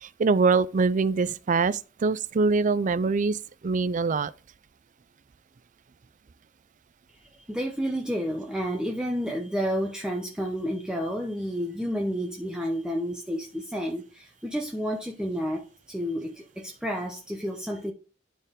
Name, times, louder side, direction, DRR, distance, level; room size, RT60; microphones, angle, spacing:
voice 1, 0.0-3.4 3.6-4.3, right 4 dB, 45° right, 0.4 m, -24 dB
voice 2, 7.1-17.9, equal, 5° right, 0.8 m, -30 dB
12.0 x 4.5 x 3.7 m
head